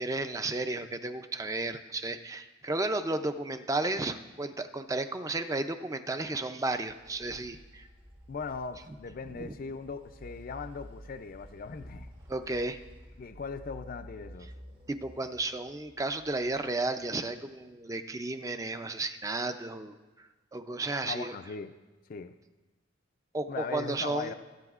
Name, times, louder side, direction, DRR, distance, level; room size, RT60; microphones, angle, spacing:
voice 1, 0.0-7.9 9.3-9.5 12.3-12.8 14.9-21.3 23.3-24.3, right 2 dB, 15° right, 9 dB, 0.4 m, -33 dB
sound 1, 6.7-17.5, equal, 90° right, 2.1 m, -51 dB
voice 2, 8.3-12.1 13.2-14.5 21.1-21.7 22.1-22.3 23.5-24.3, left 5 dB, 45° left, 9 dB, 0.4 m, -39 dB
21.5 x 9.1 x 2.4 m, 1.2 s
head